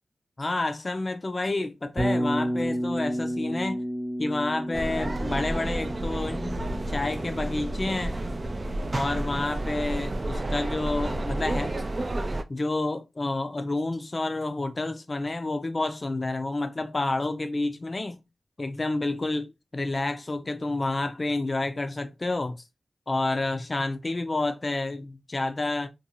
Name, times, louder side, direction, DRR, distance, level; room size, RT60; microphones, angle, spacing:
voice 1, 0.4-3.8 4.2-8.2 8.9-11.8 12.5-18.2 18.6-22.6 23.1-25.9, left 2 dB, 40° left, 0.5 m, -29 dB
Bass guitar, 2.0-10.0, equal, 25° right, 0.9 m, -32 dB
sound 1, 4.7-12.4, right 1 dB, 45° right, 0.3 m, -31 dB
2.6 x 2.3 x 2.8 m
wide cardioid pair, 65°, 0 cm